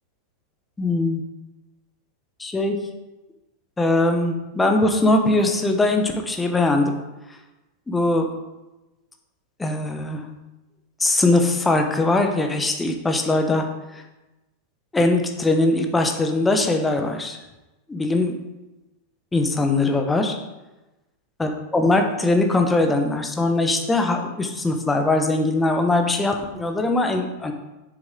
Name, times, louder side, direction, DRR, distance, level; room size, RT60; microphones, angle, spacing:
voice 1, 0.8-1.2 2.4-2.8 3.8-7.0 7.9-8.3 9.6-10.2 11.0-13.7 13.9-14.0 14.9-17.4 17.9-18.3 19.3-20.3 21.4-27.5, left 2 dB, 10° left, 4 dB, 1.1 m, -21 dB
7.3 x 6.7 x 3.8 m, 1.0 s
figure-of-eight pair, 90°, 0 cm